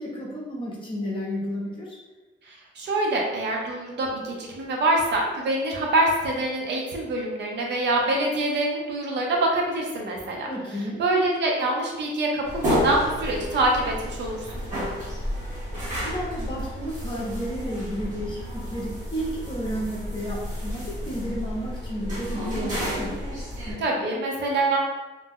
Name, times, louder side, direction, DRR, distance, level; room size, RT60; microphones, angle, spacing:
voice 1, 0.0-2.0 10.5-11.0 15.8-23.2, equal, 25° left, -4 dB, 0.7 m, -32 dB
voice 2, 2.5-10.5 11.0-14.5 23.8-24.8, right 2 dB, 65° right, -1 dB, 0.6 m, -25 dB
sound 1, 12.4-23.7, equal, 40° right, 1.0 m, -31 dB
2.7 x 2.1 x 3.5 m, 1.2 s
cardioid pair, 160°, 20 cm